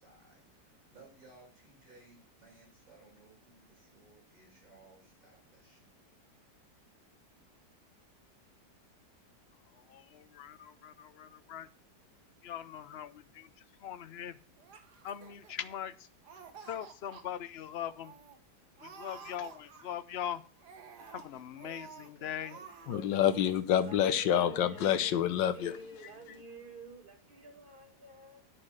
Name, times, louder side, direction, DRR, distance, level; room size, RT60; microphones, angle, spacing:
voice 1, 0.0-5.9 21.6-23.1, right 3 dB, 45° right, 7.3 m, -60 dB
voice 2, 9.9-11.7 12.4-13.5 13.8-14.4 15.0-15.9 16.6-18.1 18.8-20.4 21.1-22.6, left 10 dB, 65° left, 0.6 m, -41 dB
Laughter, 14.6-15.9 16.2-17.2 17.6-17.7 18.0-18.4 18.8-20.1 20.6-22.1 22.4-23.0 23.3-23.5, right 6 dB, 65° right, 1.9 m, -51 dB
voice 3, 22.9-25.8 26.0-26.1, left 10 dB, 85° left, 1.5 m, -28 dB
voice 4, 23.8-25.1 25.5-28.4, right 3 dB, 30° right, 2.0 m, -50 dB
9.6 x 7.5 x 6.4 m
omnidirectional pair, 1.9 m